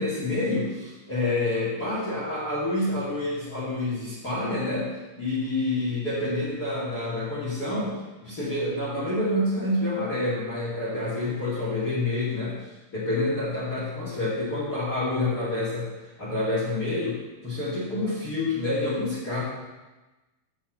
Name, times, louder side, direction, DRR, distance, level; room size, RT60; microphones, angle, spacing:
voice 1, 0.0-4.9 5.1-12.6 12.9-15.9 16.2-19.4, left 2 dB, 60° left, -6 dB, 1.0 m, -28 dB
7.5 x 7.4 x 7.2 m, 1.1 s
omnidirectional pair, 5.9 m